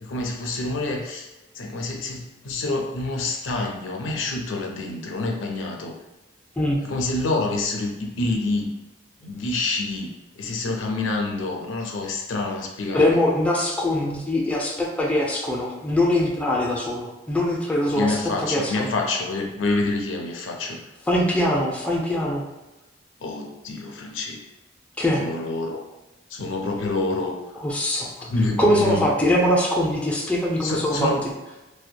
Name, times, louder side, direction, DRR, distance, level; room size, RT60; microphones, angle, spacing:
voice 1, 0.0-1.3 1.6-5.9 6.9-8.7 9.2-10.1 10.4-13.2 17.9-20.8 23.2-24.4 25.2-25.8 26.3-27.3 28.2-29.0 30.6-31.2, left 2 dB, 90° left, 1 dB, 0.4 m, -27 dB
voice 2, 12.9-18.9 21.1-22.4 25.0-25.3 27.6-28.1 28.6-31.1, left 1 dB, 5° left, -2 dB, 0.3 m, -22 dB
2.7 x 2.1 x 2.2 m, 1.0 s
head